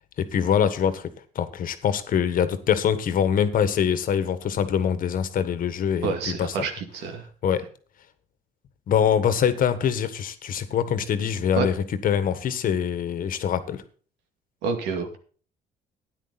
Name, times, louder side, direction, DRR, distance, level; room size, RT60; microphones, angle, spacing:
voice 1, 0.2-1.1 1.3-6.5 7.4-7.6 8.9-11.7 12.0-13.8, left 8 dB, 55° left, 12 dB, 1.5 m, -24 dB
voice 2, 6.0-7.3 11.6-11.7 14.6-15.2, right 5 dB, 90° right, 6 dB, 2.4 m, -28 dB
13.5 x 10.0 x 4.1 m, 0.41 s
cardioid pair, 110°, 17 cm